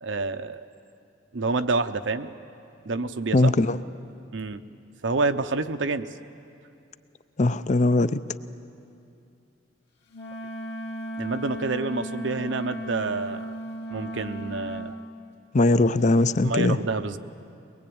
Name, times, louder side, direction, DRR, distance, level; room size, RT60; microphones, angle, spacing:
voice 1, 0.0-0.6 1.3-2.3 2.8-3.5 4.3-4.6 5.0-6.1 11.1-13.6 13.9-15.0 16.4-17.2, right 3 dB, 80° right, 0.8 m, -28 dB
voice 2, 3.3-3.8 7.4-8.2 15.5-16.8, left 2 dB, 40° left, 0.6 m, -20 dB
Wind instrument woodwind instrument, 10.1-15.0, right 1 dB, 65° left, 2.2 m, -35 dB
22.5 x 20.5 x 8.7 m
head